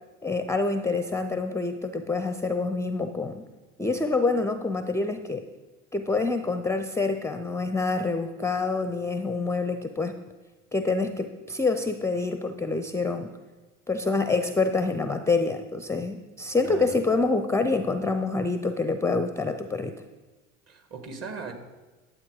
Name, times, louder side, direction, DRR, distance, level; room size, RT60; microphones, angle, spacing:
voice 1, 0.2-3.5 3.8-5.4 5.9-10.2 10.7-13.4 13.9-20.0, left 3 dB, 5° left, 9 dB, 0.5 m, -26 dB
voice 2, 16.6-17.0 20.7-21.5, right 4 dB, 40° right, 5 dB, 1.9 m, -38 dB
11.5 x 7.5 x 4.8 m, 1.2 s
hypercardioid pair, 75°, 39 cm